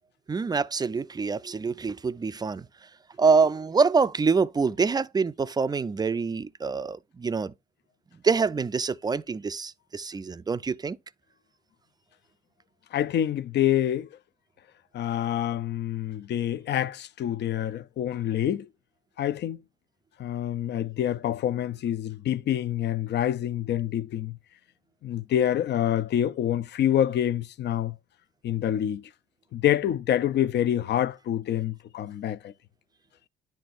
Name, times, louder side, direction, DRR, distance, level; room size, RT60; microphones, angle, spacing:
voice 1, 0.3-2.7 3.2-7.5 8.2-11.0, right 5 dB, 20° right, 0.4 m, -25 dB
voice 2, 12.9-14.1 14.9-18.7 19.2-19.6 20.2-24.3 25.0-27.9 28.4-29.0 29.5-32.5, left 11 dB, 60° left, 0.5 m, -27 dB
10.5 x 4.3 x 2.5 m
cardioid pair, 90°, 20 cm